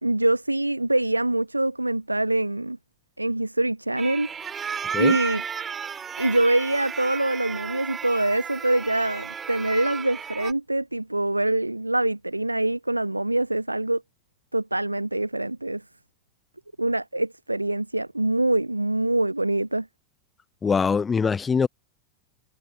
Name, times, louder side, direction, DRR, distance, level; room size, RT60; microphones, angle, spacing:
voice 1, 0.0-2.8 3.2-4.6 5.0-5.4 6.2-14.0 14.5-15.8 16.8-19.9, right 1 dB, 85° right, 0.6 m, -24 dB
sound 1, 4.0-10.5, right 6 dB, 20° right, 7.0 m, -34 dB
voice 2, 20.6-21.7, left 5 dB, 15° left, 0.8 m, -22 dB
figure-of-eight pair, 90°, 0 cm